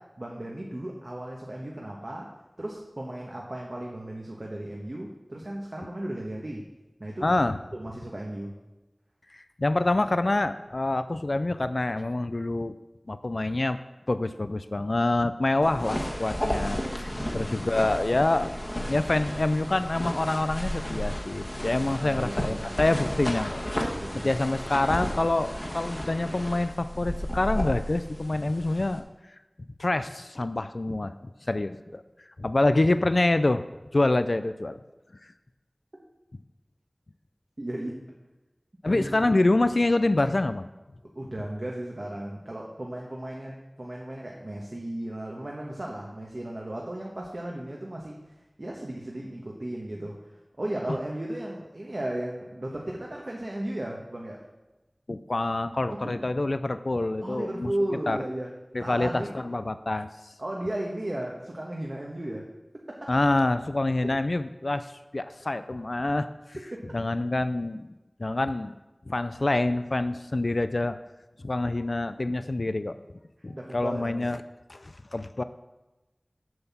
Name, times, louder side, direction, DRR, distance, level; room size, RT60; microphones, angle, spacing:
voice 1, 0.0-2.3 2.6-6.7 7.0-7.2 7.7-8.5 17.1-17.5 21.8-22.8 23.9-24.4 37.6-38.0 38.9-39.1 41.1-54.5 55.9-56.3 57.2-58.5 58.8-59.3 60.4-62.5 62.9-63.1 64.0-64.1 66.7-67.0 73.5-74.3, right 1 dB, 55° right, -2 dB, 1.2 m, -35 dB
voice 2, 7.2-7.5 9.3-12.8 13.1-13.8 14.1-29.1 29.8-31.1 31.4-32.0 32.4-33.6 33.9-34.8 35.2-35.3 38.8-40.7 55.1-57.7 58.1-58.2 58.7-60.3 63.1-66.3 66.9-67.9 68.2-68.8 69.1-71.0 71.4-73.0 73.4-74.4 74.7-75.4, left 2 dB, 70° left, 11 dB, 0.4 m, -26 dB
sound 1, 15.6-29.0, equal, 30° left, 1.4 m, -33 dB
7.8 x 5.7 x 7.1 m, 1.1 s
wide cardioid pair, 45°, 0 cm